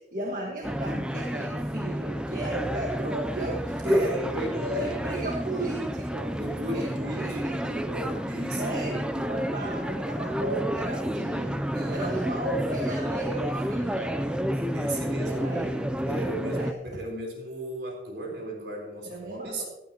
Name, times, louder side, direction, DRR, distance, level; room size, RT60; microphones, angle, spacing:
voice 1, 0.0-4.1 4.7-6.3 6.7-8.2 8.5-11.6 11.9-14.3 15.2-15.8 16.4-17.0 19.0-19.6, right 2 dB, 50° right, 0 dB, 1.6 m, -35 dB
sound 1, 0.6-16.7, equal, 5° right, 0.5 m, -30 dB
voice 2, 3.8-5.7 6.4-7.9 8.3-9.1 11.7-12.3 14.5-15.8 16.0-19.6, right 1 dB, 75° right, 0 dB, 4.0 m, -36 dB
15.5 x 11.5 x 3.0 m, 0.93 s
head